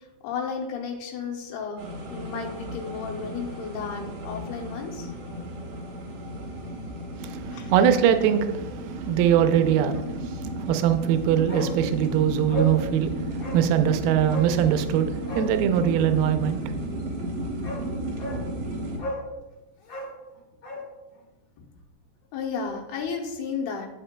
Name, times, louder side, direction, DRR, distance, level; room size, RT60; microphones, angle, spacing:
voice 1, 0.2-1.8 2.1-5.1 7.5-7.7 22.3-23.9, left 5 dB, 85° left, 1 dB, 2.8 m, -33 dB
sound 1, 1.8-19.0, right 1 dB, 60° right, 1.8 m, -34 dB
voice 2, 7.7-10.0 10.7-13.1 13.5-16.6, right 9 dB, 80° right, 8 dB, 2.4 m, -22 dB
Bark, 11.5-11.8 12.0-12.1 12.5-12.8 13.4-13.6 14.3-14.5 15.2-15.5 17.1-17.2 17.6-17.8 18.2-18.4 19.0-19.3 19.8-20.9 21.1-21.2, left 1 dB, 55° left, 1.1 m, -33 dB
10.0 x 6.4 x 2.2 m, 1.0 s
omnidirectional pair, 4.4 m